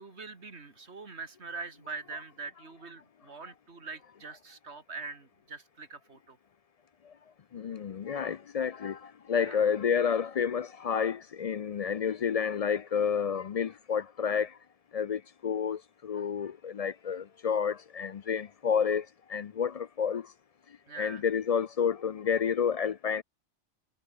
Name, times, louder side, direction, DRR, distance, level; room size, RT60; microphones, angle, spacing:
voice 1, 0.0-6.4 9.3-9.6 20.9-21.3, right 4 dB, 70° right, 2.6 m, -43 dB
voice 2, 7.5-9.0 9.3-14.5 14.9-19.0 19.3-20.2 21.0-23.2, left 7 dB, 60° left, 0.4 m, -30 dB
omnidirectional pair, 1.2 m